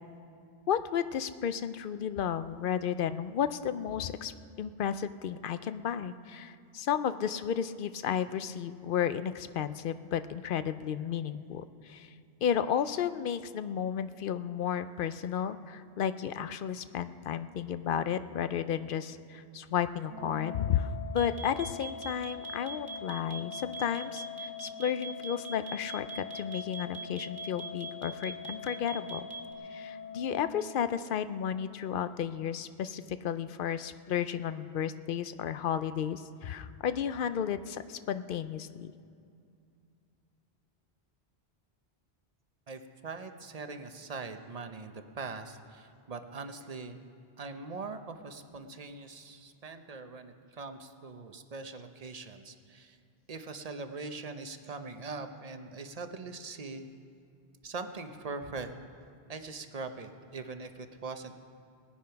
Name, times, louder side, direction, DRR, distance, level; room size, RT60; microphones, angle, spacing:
voice 1, 0.7-12.1 12.4-29.3 29.6-38.9, left 8 dB, 60° left, 13 dB, 0.6 m, -33 dB
Organ, 20.1-31.1, left 7 dB, 70° right, 1.5 m, -44 dB
sound 1, 21.2-29.5, right 4 dB, 20° right, 1.6 m, -41 dB
voice 2, 42.7-47.0 47.4-53.0 53.3-56.9 57.6-58.7 59.3-61.4, right 4 dB, 40° right, 7 dB, 0.8 m, -42 dB
19.0 x 9.7 x 5.8 m, 2.4 s
omnidirectional pair, 1.1 m